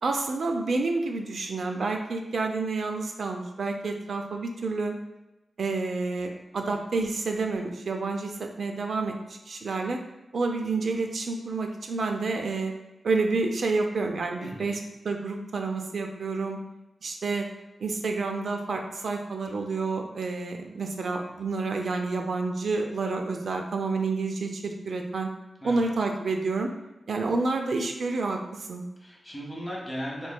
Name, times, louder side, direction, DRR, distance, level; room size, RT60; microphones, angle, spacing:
voice 1, 0.0-4.9 5.6-9.2 9.5-10.0 10.3-12.7 13.0-14.8 15.0-16.6 17.0-17.5 17.8-25.3 25.6-26.7 27.1-28.8, right 3 dB, 70° right, 3 dB, 0.4 m, -29 dB
voice 2, 14.4-14.7 25.6-26.0 29.0-30.3, equal, 15° left, -4 dB, 1.0 m, -37 dB
4.2 x 3.0 x 2.2 m, 1.0 s
wide cardioid pair, 120°, 0 cm